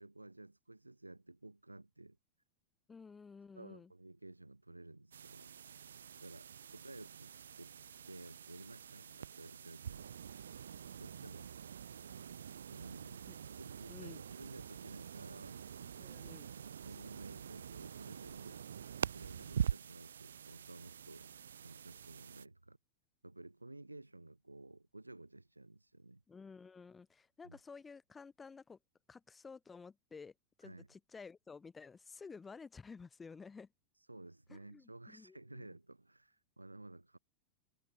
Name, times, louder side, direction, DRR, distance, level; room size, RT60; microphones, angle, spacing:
voice 1, 0.0-2.2 3.5-5.5 6.2-7.7 8.1-10.1 11.0-11.5 12.7-13.2 13.6-16.0 16.2-21.3 21.6-22.8 23.2-26.2 27.4-27.6 30.6-30.9 33.9-37.2, right 2 dB, 85° right, 2.6 m, -54 dB
voice 2, 2.9-3.9 13.3-13.4 13.9-14.2 16.0-16.5 26.3-28.8 29.1-30.3 30.6-33.7 34.5-35.7, left 5 dB, 15° left, 6.3 m, -53 dB
sound 1, 5.1-22.5, right 8 dB, 65° right, 0.8 m, -45 dB
figure-of-eight pair, 90°, 0 cm